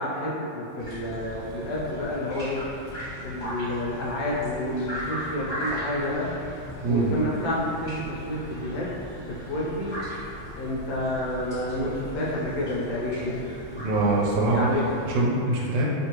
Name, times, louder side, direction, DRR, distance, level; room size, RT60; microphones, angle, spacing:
voice 1, 0.0-2.6 3.2-6.3 6.8-8.9 9.1-9.9 10.5-13.4 14.5-14.8, left 1 dB, 70° left, -5 dB, 1.0 m, -29 dB
sound 1, 0.8-15.2, equal, 25° left, 1.3 m, -38 dB
voice 2, 6.8-7.1 13.8-15.9, right 2 dB, 80° right, -3 dB, 1.3 m, -24 dB
3.0 x 2.6 x 2.9 m, 2.6 s
omnidirectional pair, 2.1 m